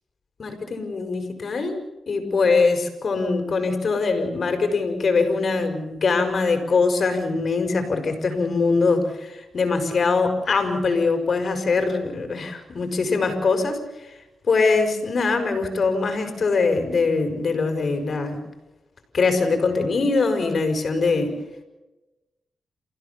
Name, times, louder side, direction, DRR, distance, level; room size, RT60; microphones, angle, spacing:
voice 1, 0.4-1.8 2.1-13.8 14.0-14.1 14.4-18.4 19.1-21.4, left 4 dB, 55° left, 6 dB, 6.1 m, -22 dB
29.5 x 16.0 x 7.1 m, 1.0 s
cardioid pair, 75°, 0 cm